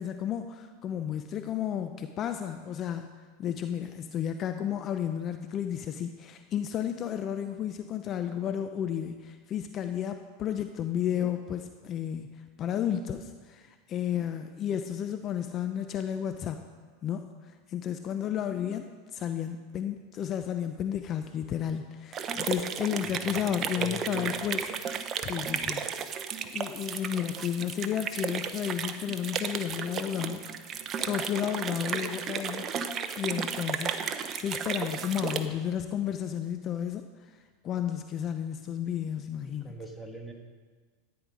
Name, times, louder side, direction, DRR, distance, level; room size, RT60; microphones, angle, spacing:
voice 1, 0.0-3.1 3.4-16.6 17.0-24.7 24.9-25.8 26.5-32.7 33.2-37.4 37.6-39.8, left 9 dB, 35° left, 8 dB, 0.7 m, -32 dB
sound 1, 22.1-35.5, right 7 dB, 35° right, 0.9 m, -34 dB
voice 2, 23.0-24.3 39.4-40.3, right 1 dB, 5° right, 1 dB, 1.9 m, -43 dB
13.5 x 9.8 x 5.2 m, 1.5 s
hypercardioid pair, 115°, 0 cm